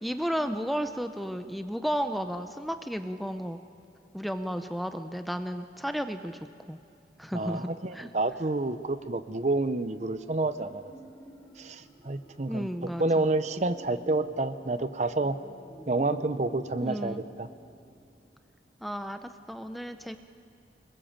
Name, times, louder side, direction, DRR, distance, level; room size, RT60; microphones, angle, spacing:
voice 1, 0.0-3.6 4.1-6.8 7.2-8.1 12.5-13.3 16.8-17.2 18.8-20.2, equal, ahead, 8 dB, 0.6 m, -33 dB
voice 2, 7.3-10.9 11.6-12.7 13.0-15.4 15.9-17.5, right 2 dB, 40° right, 12 dB, 0.7 m, -29 dB
sound 1, 9.3-18.4 18.7-18.8, equal, 20° left, 2.7 m, -50 dB
26.0 x 21.5 x 7.2 m, 2.6 s
head